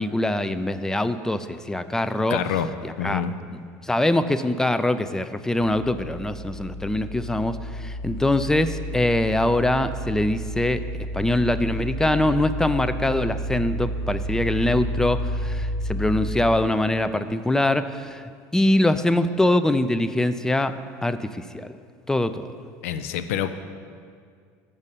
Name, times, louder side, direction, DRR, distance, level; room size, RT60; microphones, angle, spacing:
voice 1, 0.0-2.4 2.8-3.2 3.8-10.8 11.1-20.7 21.0-21.8 22.1-22.5, left 1 dB, 5° left, 12 dB, 0.3 m, -23 dB
voice 2, 2.3-2.7 3.0-3.3 22.8-23.5, left 9 dB, 90° left, 11 dB, 0.4 m, -26 dB
sound 1, 5.6-16.6, equal, 25° left, 1.7 m, -31 dB
7.3 x 5.4 x 6.7 m, 2.1 s
supercardioid pair, 110°, 7 cm